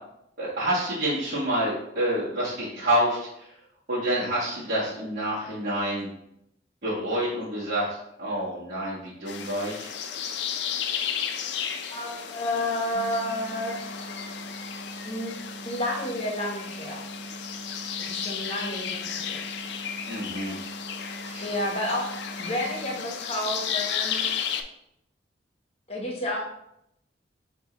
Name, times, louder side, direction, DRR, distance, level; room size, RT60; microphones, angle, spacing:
voice 1, 0.4-3.5 3.9-6.1 6.8-9.9 20.1-20.6 21.2-21.5, right 1 dB, 50° right, -10 dB, 1.4 m, -28 dB
sound 1, 9.3-24.6, left 8 dB, 65° left, 0.4 m, -34 dB
voice 2, 11.9-14.0 15.0-17.0 18.0-19.4 21.4-22.1 22.4-24.3 25.9-26.4, left 1 dB, 35° left, -1 dB, 1.0 m, -31 dB
sound 2, 12.9-22.9, right 2 dB, 10° left, 1.3 m, -43 dB
4.9 x 2.7 x 3.8 m, 0.78 s
head